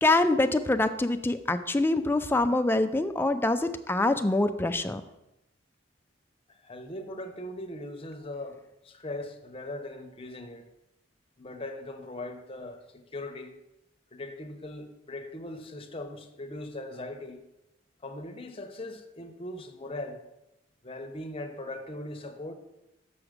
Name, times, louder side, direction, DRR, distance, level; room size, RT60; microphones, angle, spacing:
voice 1, 0.0-5.0, left 2 dB, 10° left, 0.4 m, -25 dB
voice 2, 6.5-10.7 11.4-13.6 14.1-17.4 18.0-20.2 20.8-22.5, left 1 dB, 30° left, 0.8 m, -40 dB
7.0 x 4.8 x 6.5 m
head